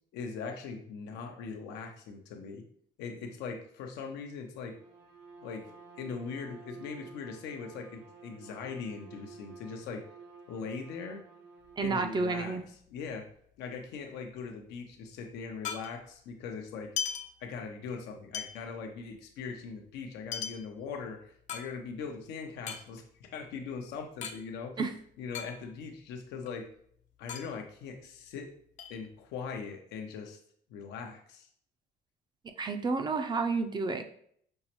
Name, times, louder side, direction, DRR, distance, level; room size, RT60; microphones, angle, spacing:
voice 1, 0.1-2.6 3.0-4.8 5.4-10.1 10.5-11.2 11.8-12.6 12.9-13.3 13.6-16.9 17.4-24.8 25.2-26.7 27.2-28.5 28.9-30.4 30.7-31.5, left 5 dB, 90° left, 4 dB, 0.6 m, -40 dB
Bowed string instrument, 4.6-12.2, right 4 dB, 70° right, 1.0 m, -52 dB
sound 1, 11.6-13.3 13.6-13.7 13.9-16.3 16.7-18.0 18.3-22.2 22.5-24.4 24.7-24.8 25.0-26.0 26.3-28.4 28.8-29.6, left 8 dB, 45° left, 0.4 m, -40 dB
voice 2, 11.8-12.6 24.8-24.9 32.4-34.0, right 4 dB, 25° right, 7 dB, 0.4 m, -30 dB
5.4 x 2.0 x 2.9 m, 0.63 s
cardioid pair, 110°, 17 cm